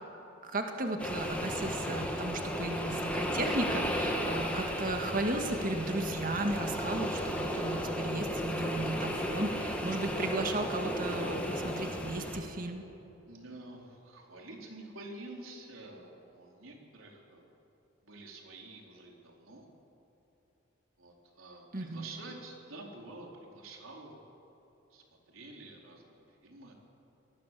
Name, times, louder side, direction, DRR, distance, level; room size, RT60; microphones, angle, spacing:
voice 1, 0.4-12.8 21.7-22.0, right 2 dB, 40° right, 4 dB, 2.0 m, -35 dB
sound 1, 1.0-12.4, equal, 5° left, 2.5 m, -34 dB
voice 2, 13.3-17.5 18.0-19.6 21.0-24.2 24.9-26.8, right 2 dB, 85° right, 0 dB, 4.3 m, -49 dB
26.0 x 19.5 x 7.7 m, 3.0 s
head